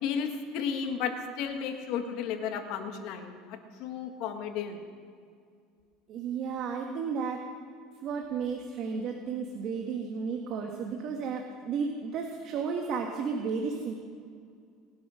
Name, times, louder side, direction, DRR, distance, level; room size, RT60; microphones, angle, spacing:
voice 1, 0.0-4.8, left 7 dB, 60° left, 5 dB, 1.7 m, -33 dB
voice 2, 6.1-7.4 8.0-13.9, right 5 dB, 45° right, 2 dB, 1.6 m, -33 dB
20.0 x 11.0 x 6.3 m, 2.2 s
supercardioid pair, 140°, 0 cm